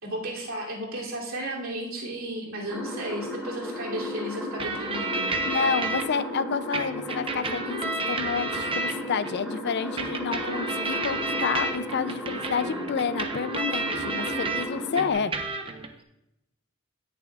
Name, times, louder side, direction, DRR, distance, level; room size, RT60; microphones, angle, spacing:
voice 1, 0.0-5.3, right 1 dB, 75° right, -3 dB, 2.9 m, -34 dB
sound 1, 2.7-15.1, equal, ahead, 2.3 m, -35 dB
sound 2, 4.6-6.0 6.7-9.3 10.0-14.7 15.0-15.9, right 3 dB, 25° right, 0.8 m, -31 dB
voice 2, 5.5-15.3, left 6 dB, 55° left, 14 dB, 0.5 m, -29 dB
17.0 x 6.9 x 2.4 m, 0.85 s
head